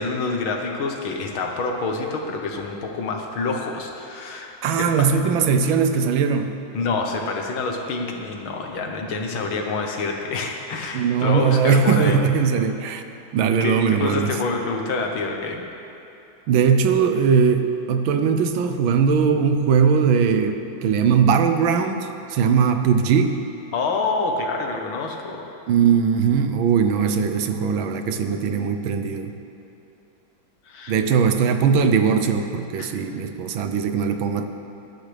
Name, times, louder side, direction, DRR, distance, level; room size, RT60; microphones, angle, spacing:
voice 1, 0.0-5.1 6.7-12.2 13.6-15.7 23.7-25.5 30.7-31.0 32.8-32.9, left 3 dB, 90° left, 2 dB, 2.1 m, -27 dB
voice 2, 4.6-6.5 10.9-13.0 13.3-14.4 16.5-23.4 25.7-29.3 30.9-34.5, right 6 dB, 80° right, 7 dB, 1.5 m, -20 dB
19.5 x 11.5 x 3.4 m, 2.8 s
omnidirectional pair, 2.2 m